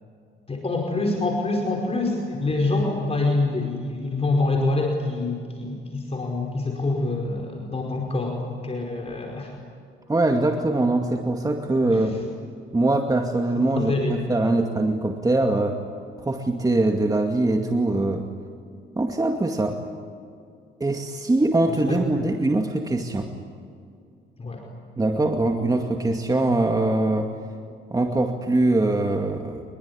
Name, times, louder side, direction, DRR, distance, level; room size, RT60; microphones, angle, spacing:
voice 1, 0.5-9.5 11.9-12.2 13.7-14.2 21.7-22.3 24.4-24.7, left 2 dB, 30° left, 1 dB, 5.0 m, -26 dB
voice 2, 10.1-12.1 12.7-15.8 16.2-18.3 19.0-19.8 20.8-23.3 25.0-27.3 27.9-29.6, right 2 dB, 20° right, 3 dB, 2.2 m, -22 dB
25.5 x 22.5 x 9.9 m, 2.3 s
cardioid pair, 90°, 20 cm